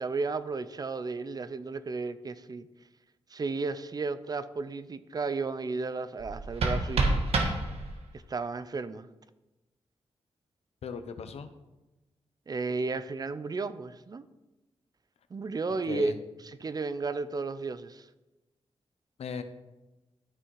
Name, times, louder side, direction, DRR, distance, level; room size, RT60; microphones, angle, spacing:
voice 1, 0.0-2.7 3.3-7.2 8.3-9.1 12.5-14.3 15.3-16.1 16.4-18.1, right 4 dB, 40° right, 13 dB, 0.6 m, -33 dB
sound 1, 6.2-8.2, right 2 dB, 75° right, 1.8 m, -28 dB
voice 2, 10.8-11.5 15.9-16.2 19.2-19.4, left 6 dB, 85° left, 10 dB, 0.9 m, -37 dB
13.0 x 6.1 x 4.7 m, 1.0 s
wide cardioid pair, 120°, 10 cm